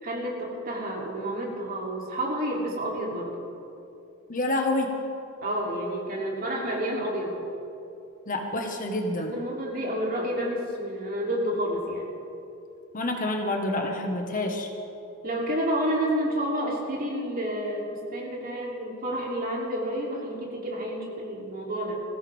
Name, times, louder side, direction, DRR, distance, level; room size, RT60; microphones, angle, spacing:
voice 1, 0.0-3.3 5.4-7.3 9.2-12.1 15.2-22.0, equal, 45° right, -3 dB, 3.1 m, -30 dB
voice 2, 4.3-5.0 8.3-9.3 12.9-14.7, left 2 dB, 40° left, 2 dB, 1.5 m, -28 dB
20.5 x 16.0 x 3.6 m, 2.8 s
head